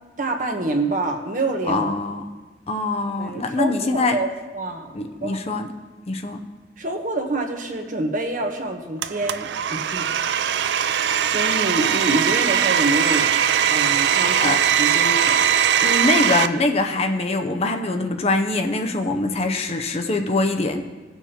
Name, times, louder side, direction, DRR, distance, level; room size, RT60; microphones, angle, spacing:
voice 1, 0.2-1.9 3.2-4.9 5.2-5.4 6.8-10.0 10.9-11.0 11.3-13.3 13.7-15.4, right 2 dB, 45° right, 4 dB, 1.0 m, -26 dB
voice 2, 1.7-2.2 2.7-4.1 4.9-5.7 6.1-6.4 14.4-14.6 15.8-20.8, left 2 dB, 35° left, 5 dB, 0.6 m, -23 dB
Domestic sounds home sounds, 9.0-16.5, right 9 dB, 70° right, 0.4 m, -20 dB
17.5 x 7.0 x 2.9 m, 1.3 s
head